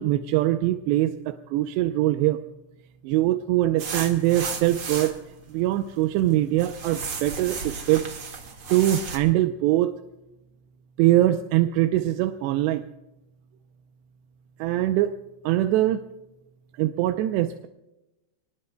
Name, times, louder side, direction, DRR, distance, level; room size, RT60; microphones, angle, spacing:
voice 1, 0.0-2.4 3.0-5.2 5.5-8.1 8.7-9.9 11.0-12.8 14.6-15.1 15.5-16.0 16.8-17.7, right 14 dB, 80° right, 7 dB, 2.7 m, -22 dB
sound 1, 3.8-5.2 5.8-6.3 6.6-9.2, right 5 dB, 45° right, 1.8 m, -34 dB
28.0 x 20.5 x 2.3 m, 0.98 s
omnidirectional pair, 5.2 m